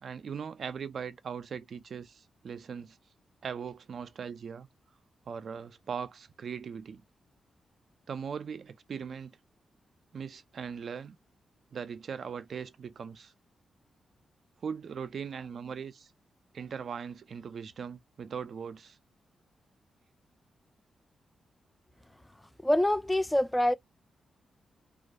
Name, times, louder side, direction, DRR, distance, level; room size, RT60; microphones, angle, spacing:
voice 1, 0.0-3.0 3.4-4.7 5.3-7.0 8.1-9.4 10.1-11.2 11.7-13.3 14.6-16.1 16.5-19.0, right 6 dB, 65° right, 0.3 m, -39 dB
voice 2, 22.6-23.8, left 1 dB, 10° left, 0.3 m, -25 dB
2.3 x 2.2 x 2.6 m
supercardioid pair, 50°, 0 cm